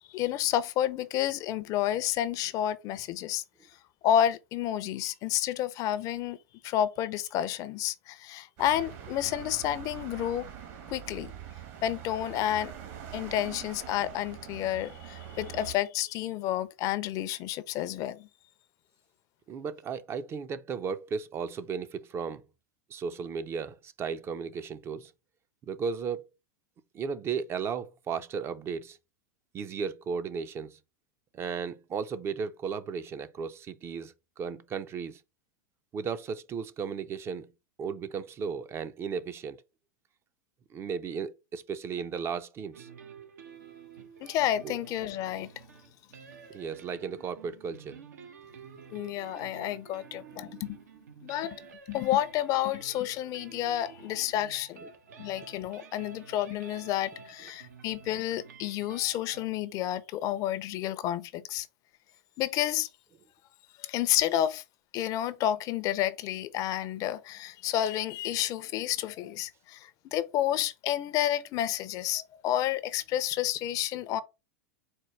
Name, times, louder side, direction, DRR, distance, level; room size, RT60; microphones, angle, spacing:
voice 1, 0.1-3.4 4.0-6.4 6.6-10.5 10.9-11.3 11.8-12.7 13.1-18.3 44.2-45.5 48.9-50.8 51.2-51.6 51.9-54.8 55.2-61.7 62.4-62.9 63.8-64.6 64.9-74.2, left 12 dB, 40° left, 0.5 m, -30 dB
sound 1, 8.6-15.7, right 9 dB, 55° right, 1.4 m, -44 dB
voice 2, 19.5-22.4 22.9-25.1 25.6-26.2 26.9-29.0 29.5-30.8 31.3-35.2 35.9-37.5 37.8-39.6 40.7-42.9 44.6-44.7 46.5-48.0 54.8-54.9, right 6 dB, 30° right, 0.4 m, -35 dB
sound 2, 42.7-59.4, right 5 dB, 85° right, 0.9 m, -50 dB
4.3 x 2.2 x 4.4 m
hypercardioid pair, 115°, 9 cm